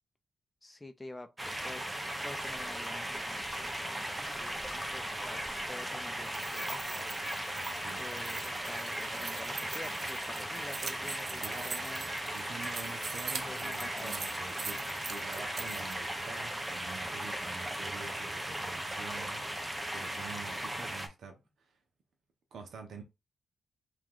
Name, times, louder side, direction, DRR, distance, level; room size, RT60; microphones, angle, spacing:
voice 1, 0.6-1.3 1.6-1.8 2.2-7.1 8.0-12.1 13.4-14.2, left 2 dB, 15° left, 0.6 m, -48 dB
sound 1, 1.4-21.1, right 1 dB, 15° right, 0.9 m, -37 dB
sound 2, 6.2-15.9, right 5 dB, 50° right, 0.5 m, -43 dB
voice 2, 7.7-8.1 11.4-11.9 12.3-19.4 19.9-21.7 22.5-23.0, right 4 dB, 75° right, 1.0 m, -47 dB
3.0 x 3.0 x 3.8 m
cardioid pair, 80°, 0 cm